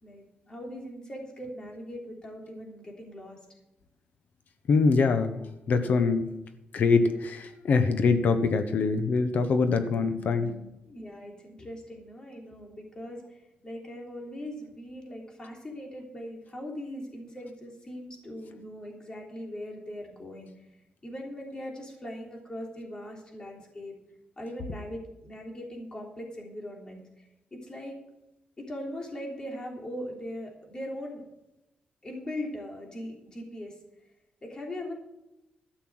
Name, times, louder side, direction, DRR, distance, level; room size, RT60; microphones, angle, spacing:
voice 1, 0.0-3.4 10.8-13.4 13.6-20.5 21.0-24.0 24.4-27.0 27.5-28.0 28.6-31.2 32.0-33.7 34.4-34.9, left 1 dB, 25° left, 0 dB, 3.3 m, -40 dB
voice 2, 4.7-5.3 5.7-6.3 6.7-10.7, left 4 dB, 65° left, 9 dB, 1.2 m, -24 dB
13.0 x 6.8 x 7.8 m, 0.90 s
wide cardioid pair, 135°, 3 cm